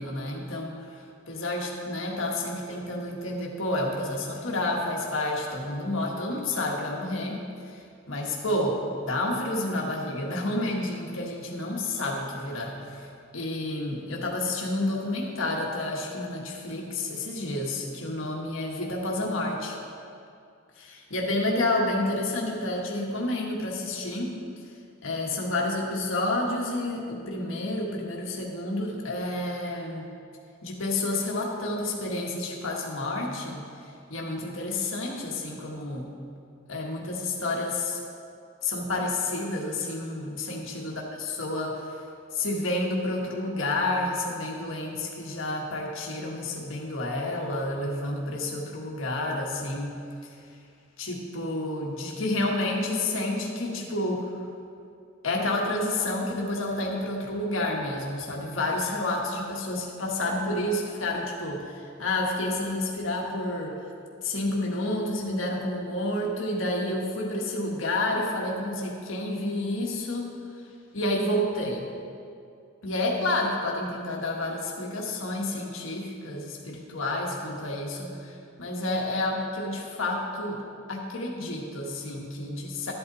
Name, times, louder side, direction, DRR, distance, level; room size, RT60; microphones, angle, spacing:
voice 1, 0.0-7.4 7.7-13.1 13.3-19.8 20.8-24.4 25.0-30.0 30.6-33.7 34.1-36.1 36.7-38.0 38.6-41.8 42.3-50.0 51.0-54.3 55.2-63.8 64.2-70.4 70.9-71.9 72.8-80.6 80.9-82.9, left 2 dB, 70° left, -1 dB, 1.5 m, -30 dB
12.5 x 8.2 x 4.1 m, 2.4 s
head